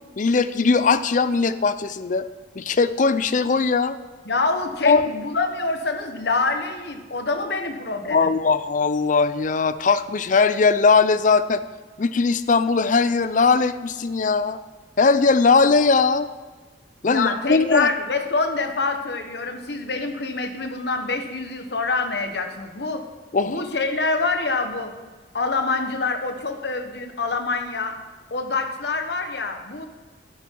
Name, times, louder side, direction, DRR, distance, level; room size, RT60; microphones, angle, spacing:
voice 1, 0.2-2.3 2.6-4.0 4.8-5.0 8.1-11.6 12.0-14.6 15.0-16.3 17.0-17.9 23.3-23.7, left 4 dB, 45° left, 14 dB, 0.5 m, -19 dB
voice 2, 4.2-8.3 17.0-23.1 23.5-24.9 25.3-27.9 28.3-29.9, left 3 dB, 70° left, 6 dB, 1.2 m, -26 dB
12.0 x 9.5 x 4.6 m, 1.4 s
head